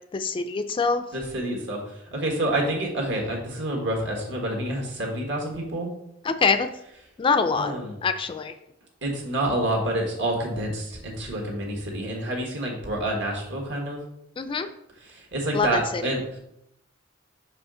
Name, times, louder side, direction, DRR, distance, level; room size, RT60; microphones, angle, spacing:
voice 1, 0.1-1.0 6.2-6.7 7.2-7.7 8.0-8.5 14.4-14.7 15.5-16.0, left 5 dB, 25° left, 9 dB, 0.3 m, -24 dB
voice 2, 1.1-5.9 7.5-8.0 9.0-14.0 15.0-16.4, right 1 dB, 65° right, 0 dB, 1.6 m, -28 dB
5.7 x 4.9 x 3.8 m, 0.79 s
head